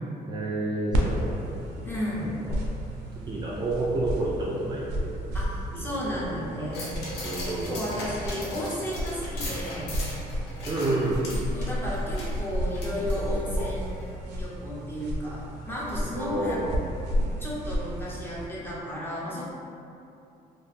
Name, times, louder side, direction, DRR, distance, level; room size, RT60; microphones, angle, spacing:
voice 1, 0.3-1.6 2.2-2.6 3.3-5.1 5.7-5.9 6.6-6.7 7.2-7.9 10.7-11.3 13.6-13.7 16.1-16.7, right 2 dB, 25° right, -7 dB, 0.4 m, -30 dB
sound 1, 0.9-18.5, equal, 85° right, 0.4 m, -32 dB
voice 2, 1.8-2.3 5.3-7.0 7.4-9.9 11.5-16.6 17.4-19.4, equal, 15° left, -7 dB, 0.7 m, -34 dB
sound 2, 6.7-13.6 14.0-14.1, left 1 dB, 80° left, 0.6 m, -38 dB
2.4 x 2.2 x 3.2 m, 2.6 s
cardioid pair, 110°, 17 cm